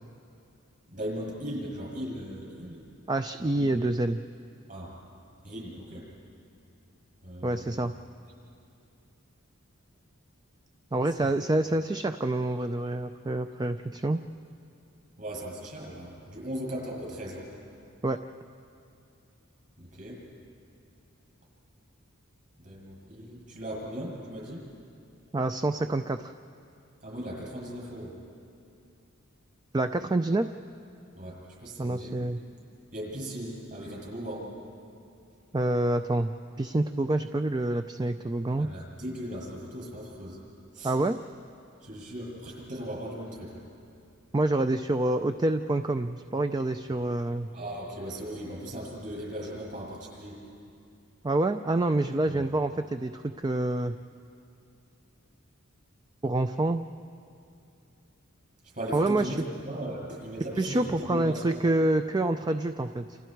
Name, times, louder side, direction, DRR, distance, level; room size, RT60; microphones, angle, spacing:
voice 1, 0.9-2.8 3.4-3.8 4.7-4.9 5.4-6.1 7.2-7.9 8.4-8.5 11.2-11.3 15.2-17.5 19.8-20.2 22.6-24.6 27.0-28.2 31.2-32.2 32.9-34.5 38.6-40.4 40.7-41.0 41.8-43.6 47.5-50.4 52.3-52.4 58.6-61.5, equal, 40° right, -3 dB, 7.7 m, -38 dB
voice 2, 3.1-4.2 7.4-7.9 10.9-14.2 18.0-18.2 25.3-26.3 29.7-30.5 31.8-32.4 35.5-38.7 40.8-41.2 44.3-47.5 51.2-53.9 56.2-56.8 58.9-59.4 60.6-63.2, right 2 dB, 20° right, 8 dB, 0.4 m, -27 dB
29.0 x 28.0 x 4.6 m, 2.7 s
head